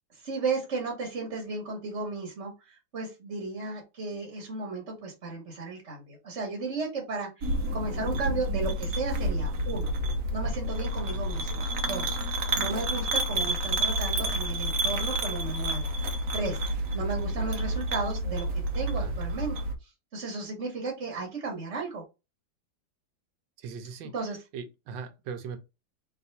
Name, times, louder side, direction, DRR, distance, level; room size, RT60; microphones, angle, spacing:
voice 1, 0.1-9.9 10.3-12.2 12.5-16.6 16.9-18.5 18.7-19.6 19.8-22.0 24.1-24.4, right 3 dB, 40° right, 1.4 m, -34 dB
sound 1, 7.4-19.7, right 1 dB, 60° right, 1.1 m, -29 dB
voice 2, 23.6-24.1 24.5-25.6, right 6 dB, 85° right, 1.4 m, -39 dB
3.4 x 2.9 x 4.0 m
omnidirectional pair, 2.0 m